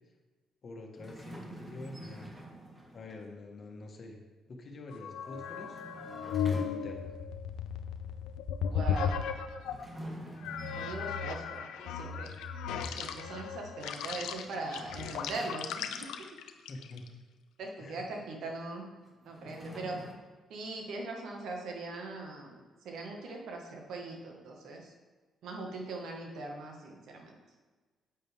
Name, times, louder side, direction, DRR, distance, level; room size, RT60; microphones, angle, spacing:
voice 1, 0.6-2.3 2.9-4.2 4.5-5.8 6.5-7.1 16.7-17.0 17.8-18.0, left 2 dB, 50° left, 2 dB, 1.6 m, -46 dB
sound 1, 1.0-3.3 5.1-7.1 9.6-11.6 14.0-16.2 19.0-20.1, right 1 dB, 20° right, 1.6 m, -47 dB
sound 2, 4.9-9.9 10.4-17.1, left 7 dB, 90° left, 0.6 m, -36 dB
voice 2, 8.7-9.2 10.7-12.3 13.0-16.1 17.6-18.9 19.3-20.0 20.5-24.9 25.4-27.4, right 2 dB, 75° right, 1 dB, 1.7 m, -40 dB
9.2 x 7.7 x 3.6 m, 1.3 s
cardioid pair, 90°, 0 cm